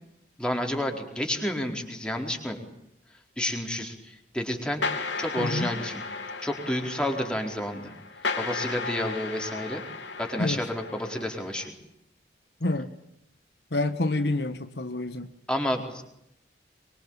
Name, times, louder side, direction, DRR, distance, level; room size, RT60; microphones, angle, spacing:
voice 1, 0.4-2.6 3.4-4.8 5.2-6.0 6.4-7.9 8.4-9.8 10.2-11.7 15.5-16.0, left 1 dB, 5° left, 2 dB, 4.4 m, -30 dB
sound 1, 4.8-11.7, left 4 dB, 90° left, 3.4 m, -35 dB
voice 2, 5.4-5.7 10.4-10.6 12.6-12.9 13.7-15.3, left 2 dB, 70° left, 9 dB, 1.5 m, -28 dB
25.0 x 23.5 x 9.0 m, 0.80 s
head